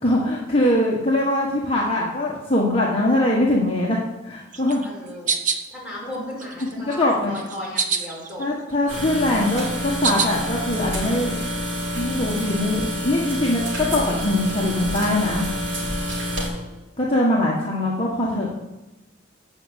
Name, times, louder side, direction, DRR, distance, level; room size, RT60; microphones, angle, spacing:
voice 1, 0.0-4.0 4.2-4.8 6.9-7.3 8.4-11.4 11.9-15.4 17.0-18.6, left 1 dB, 30° left, -4 dB, 1.5 m, -22 dB
sound 1, 4.5-5.7 6.1-7.0 7.3-8.4 8.7-10.5, right 5 dB, 40° right, 1.0 m, -26 dB
voice 2, 4.8-5.4 5.7-8.4 16.2-16.8, left 1 dB, 5° right, -5 dB, 5.3 m, -36 dB
sound 2, 8.9-16.5, equal, 65° right, 3.5 m, -28 dB
15.0 x 5.4 x 8.0 m, 1.0 s
head